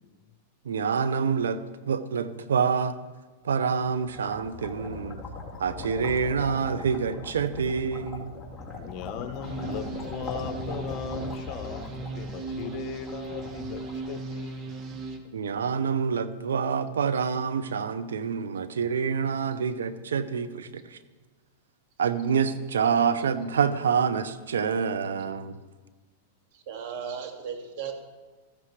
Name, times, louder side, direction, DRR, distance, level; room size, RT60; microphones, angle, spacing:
voice 1, 0.6-3.0 3.4-5.2 5.6-8.3 15.3-21.0 22.0-25.6, right 6 dB, 90° right, 12 dB, 0.8 m, -27 dB
sound 1, 3.8-14.7, left 3 dB, 15° left, 3.4 m, -40 dB
voice 2, 8.8-13.8 14.1-14.7, left 8 dB, 45° left, 9 dB, 1.1 m, -38 dB
sound 2, 9.4-15.2, right 4 dB, 35° right, 1.5 m, -37 dB
voice 3, 26.5-27.9, right 7 dB, 55° right, 3 dB, 2.1 m, -36 dB
14.0 x 13.5 x 3.3 m, 1.3 s
hypercardioid pair, 125°, 0 cm